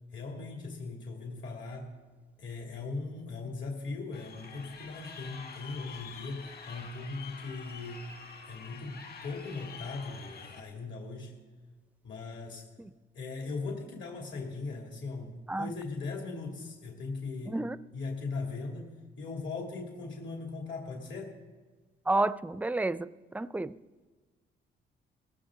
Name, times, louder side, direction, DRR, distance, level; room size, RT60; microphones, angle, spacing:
voice 1, 0.1-1.9 2.4-8.1 8.5-11.4 12.0-12.6 13.1-17.6 17.9-18.9 19.2-21.3, left 3 dB, 70° left, 2.7 m, -39 dB
Crowd, 4.1-10.6, left 5 dB, 50° left, 2.0 m, -47 dB
voice 2, 22.1-23.8, right 2 dB, 10° right, 0.4 m, -30 dB
18.0 x 15.0 x 3.8 m
cardioid pair, 90°, 20 cm